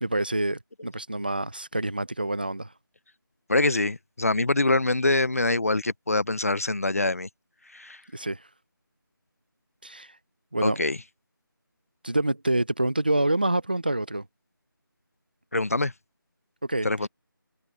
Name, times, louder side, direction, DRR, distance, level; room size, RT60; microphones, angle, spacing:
voice 1, 0.0-2.7 8.1-8.5 9.8-10.2 10.5-10.8 12.0-14.3 16.6-17.1, right 1 dB, 25° right, 0.5 m, -27 dB
voice 2, 3.5-7.3 7.7-8.0 10.6-11.0 15.5-15.9 16.8-17.1, left 2 dB, 40° left, 0.6 m, -24 dB
figure-of-eight pair, 175°, 12 cm